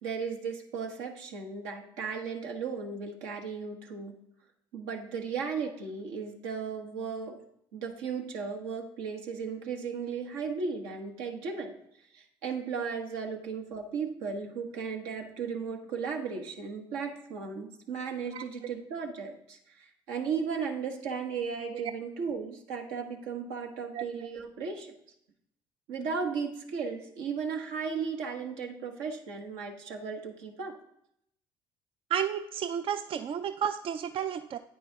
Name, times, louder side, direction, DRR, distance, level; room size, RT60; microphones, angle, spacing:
voice 1, 0.0-4.2 4.7-7.4 7.7-11.7 12.1-24.9 25.9-30.7, right 5 dB, 75° right, 3 dB, 1.3 m, -35 dB
voice 2, 32.1-34.6, right 8 dB, 45° right, 10 dB, 0.4 m, -32 dB
9.1 x 9.1 x 2.9 m, 0.74 s
hypercardioid pair, 55°, 13 cm